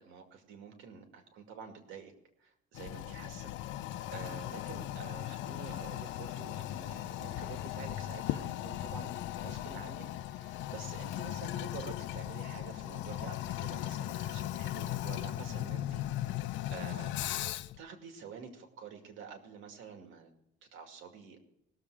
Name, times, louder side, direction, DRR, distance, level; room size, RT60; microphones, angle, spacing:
voice 1, 0.0-2.1 2.4-16.4 16.7-17.1 17.8-20.3 20.7-21.4, right 6 dB, 75° right, 4 dB, 2.4 m, -48 dB
Toilet flush, 2.7-17.8, left 14 dB, 70° left, 0.5 m, -38 dB
20.0 x 7.3 x 4.9 m, 0.79 s
cardioid pair, 175°, 20 cm